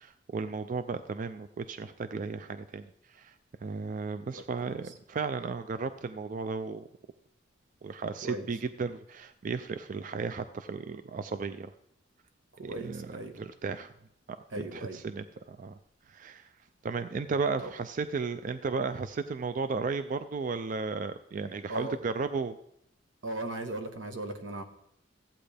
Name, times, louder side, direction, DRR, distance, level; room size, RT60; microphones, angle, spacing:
voice 1, 0.0-6.9 7.8-11.7 12.7-13.9 14.6-15.8 16.1-16.6 16.8-22.6, right 4 dB, 45° right, 10 dB, 0.4 m, -34 dB
voice 2, 12.5-13.4 14.5-15.0 17.6-17.7 21.7-22.0 23.2-24.6, right 1 dB, 85° right, 6 dB, 1.2 m, -38 dB
14.5 x 8.8 x 3.4 m, 0.76 s
head